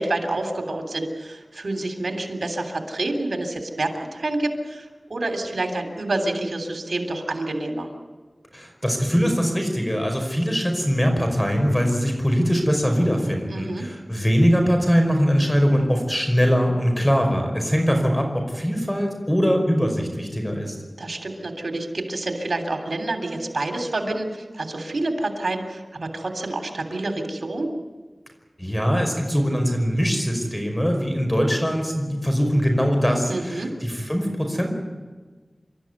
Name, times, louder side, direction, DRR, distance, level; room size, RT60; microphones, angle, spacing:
voice 1, 0.0-7.9 13.5-13.9 21.0-27.7 33.3-33.7, right 2 dB, 90° right, 5 dB, 3.2 m, -28 dB
voice 2, 8.5-20.8 28.6-34.7, equal, 15° left, 3 dB, 5.3 m, -22 dB
27.5 x 13.5 x 9.7 m, 1.4 s
wide cardioid pair, 50°, 0 cm